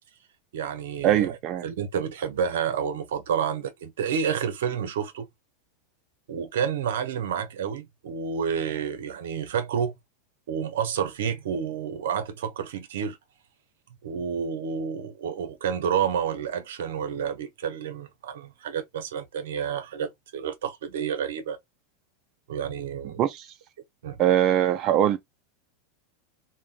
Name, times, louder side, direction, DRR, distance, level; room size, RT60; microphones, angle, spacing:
voice 1, 0.5-1.4 1.6-5.3 6.3-10.0 10.5-13.2 14.0-21.6 22.5-23.2 24.0-24.2, right 7 dB, 75° right, 0.6 m, -29 dB
voice 2, 1.0-1.6 23.2-23.5 24.2-25.2, right 11 dB, 40° right, 0.4 m, -22 dB
3.3 x 2.1 x 2.4 m
hypercardioid pair, 115°, 0 cm